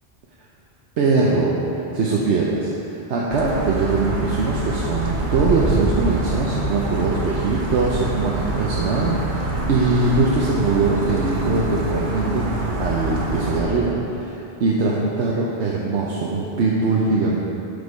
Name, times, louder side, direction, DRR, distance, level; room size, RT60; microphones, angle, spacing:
voice 1, 1.0-1.6 1.9-17.5, right 3 dB, 85° right, -4 dB, 1.0 m, -22 dB
sound 1, 3.3-13.6, right 1 dB, 50° right, 1.0 m, -25 dB
8.0 x 5.2 x 5.2 m, 3.0 s
omnidirectional pair, 1.1 m